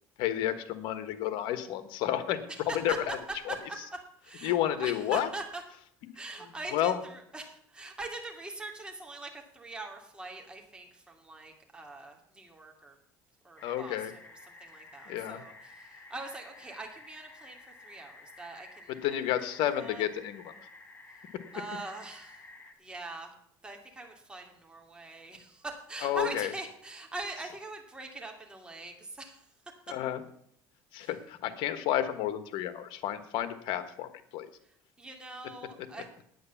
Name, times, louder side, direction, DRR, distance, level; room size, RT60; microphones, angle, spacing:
voice 1, 0.2-2.4 2.7-3.2 3.5-3.6 4.4-5.3 6.7-7.0 13.6-14.1 15.1-15.4 19.0-20.5 26.0-26.5 29.9-30.2 30.9-34.5, left 11 dB, 75° left, 12 dB, 1.3 m, -31 dB
voice 2, 2.5-3.0 3.5-3.6 4.2-5.6 6.1-13.0 13.4-14.3 14.6-18.9 19.8-20.0 21.1-21.2 21.5-22.5 22.8-23.3 23.6-29.5 31.0-31.1 35.0-36.1, right 2 dB, 10° right, 1 dB, 2.5 m, -42 dB
sound 1, 13.6-22.7, left 2 dB, 25° left, 1.8 m, -52 dB
9.6 x 9.2 x 7.1 m, 0.68 s
cardioid pair, 110°, 8 cm